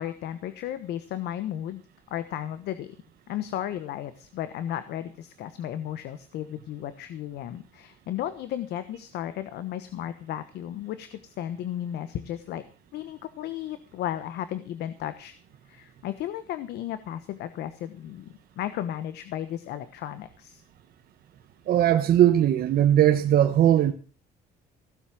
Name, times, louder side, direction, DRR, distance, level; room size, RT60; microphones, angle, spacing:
voice 1, 0.0-1.8 2.1-2.9 3.3-12.6 12.9-15.3 15.7-20.6, left 11 dB, 75° left, 1.2 m, -34 dB
voice 2, 21.7-23.9, right 11 dB, 60° right, 1.2 m, -19 dB
16.5 x 7.5 x 7.6 m
cardioid pair, 110°, 17 cm